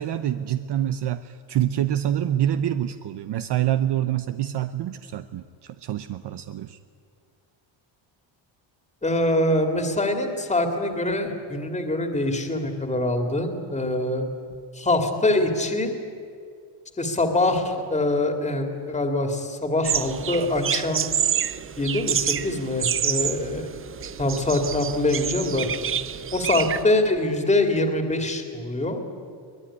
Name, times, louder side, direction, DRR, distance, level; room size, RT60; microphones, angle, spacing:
voice 1, 0.0-6.8, right 11 dB, 55° right, 11 dB, 0.8 m, -26 dB
voice 2, 9.0-14.3 14.7-16.0 17.0-21.1 21.8-23.7 24.2-25.7 26.3-29.0, left 2 dB, 15° left, 5 dB, 2.3 m, -24 dB
sound 1, 19.8-26.8, right 8 dB, 25° right, 0.5 m, -28 dB
23.0 x 20.0 x 9.9 m, 2.2 s
cardioid pair, 160°, 50 cm